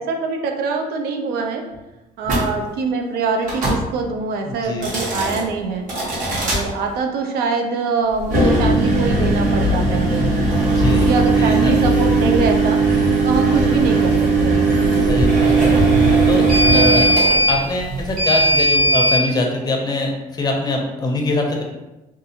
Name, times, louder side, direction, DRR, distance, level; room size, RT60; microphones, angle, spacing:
voice 1, 0.0-1.7 2.2-5.9 6.4-10.3 10.9-15.1, right 4 dB, 85° right, 3 dB, 0.4 m, -24 dB
sound 1, 2.2-2.5 3.4-3.8 4.7-5.4 5.9-6.6 8.2-19.2, right 2 dB, 55° right, 1.1 m, -17 dB
voice 2, 4.5-4.9 10.6-11.1 11.4-11.7 13.5-13.8 15.1-15.7 16.3-17.1 17.5-21.6, left 2 dB, 25° left, 1 dB, 0.5 m, -23 dB
2.5 x 2.4 x 2.7 m, 1.0 s
cardioid pair, 135°, 16 cm